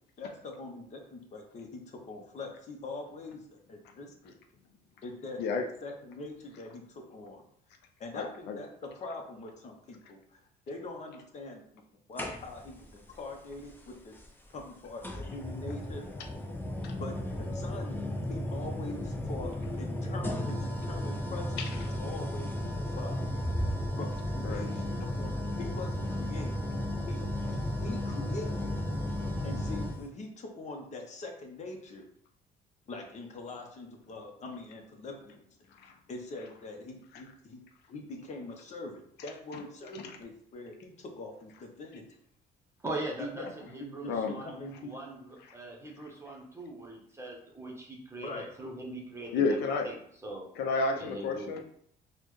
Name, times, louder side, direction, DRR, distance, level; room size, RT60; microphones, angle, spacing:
voice 1, 0.2-4.3 5.0-7.4 8.0-11.6 12.1-14.1 14.5-16.1 17.0-18.0 18.3-23.2 24.0-26.6 27.1-28.6 29.4-32.0 32.9-35.4 36.1-37.6 37.9-42.0 43.2-44.9 48.2-48.5, left 2 dB, 45° left, 3 dB, 0.8 m, -43 dB
voice 2, 8.1-8.6 21.6-21.7 24.4-24.6 35.8-35.9 44.1-44.3 49.3-49.9 50.6-51.6, left 4 dB, 80° left, 4 dB, 0.5 m, -30 dB
sound 1, 12.2-12.8 14.2-14.3 15.0-30.0, left 1 dB, 10° left, 0.6 m, -34 dB
voice 3, 42.8-48.3 48.6-50.4 50.9-51.5, right 2 dB, 15° right, -1 dB, 0.9 m, -41 dB
4.1 x 2.2 x 3.1 m, 0.65 s
cardioid pair, 110°, 17 cm